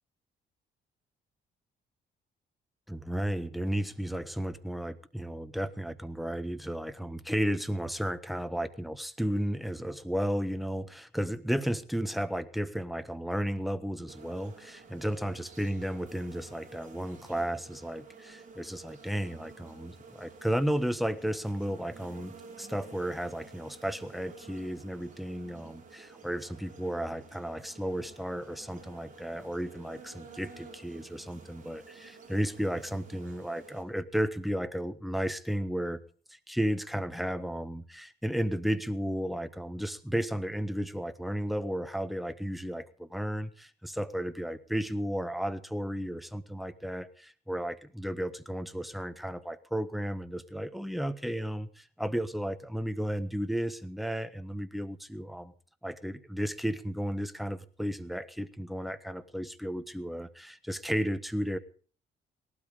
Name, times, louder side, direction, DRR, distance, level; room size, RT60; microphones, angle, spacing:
voice 1, 2.9-36.0 36.3-55.5 55.8-61.6, equal, ahead, 12 dB, 1.3 m, -33 dB
sound 1, 14.1-33.8, right 4 dB, 40° right, 5.5 m, -52 dB
18.5 x 12.5 x 5.1 m, 0.42 s
cardioid pair, 90°, 20 cm